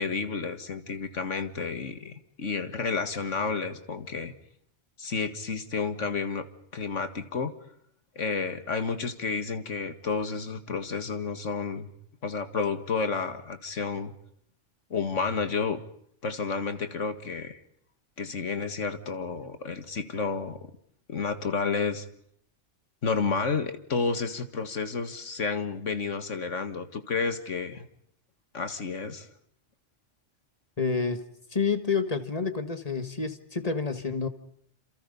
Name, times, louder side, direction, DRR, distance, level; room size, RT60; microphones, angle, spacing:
voice 1, 0.0-4.3 5.0-6.5 6.7-7.5 8.2-11.9 12.2-14.1 14.9-15.8 16.2-17.6 18.2-20.6 21.1-22.1 23.0-27.9 28.5-29.3, left 4 dB, 80° left, 9 dB, 2.1 m, -31 dB
voice 2, 30.8-31.2 31.5-34.3, left 5 dB, 30° left, 8 dB, 1.8 m, -28 dB
28.0 x 28.0 x 5.5 m, 0.68 s
omnidirectional pair, 1.2 m